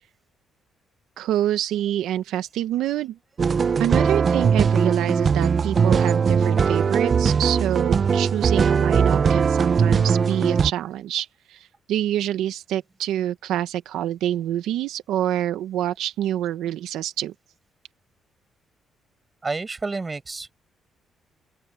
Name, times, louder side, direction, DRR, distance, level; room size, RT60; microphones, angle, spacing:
voice 1, 1.2-3.2 3.8-17.3, right 12 dB, 85° right, 0.8 m, -26 dB
sound 1, 3.4-10.7, right 6 dB, 45° right, 0.6 m, -20 dB
voice 2, 19.4-20.6, right 3 dB, 25° right, 6.4 m, -30 dB
open air
cardioid pair, 90°, 0 cm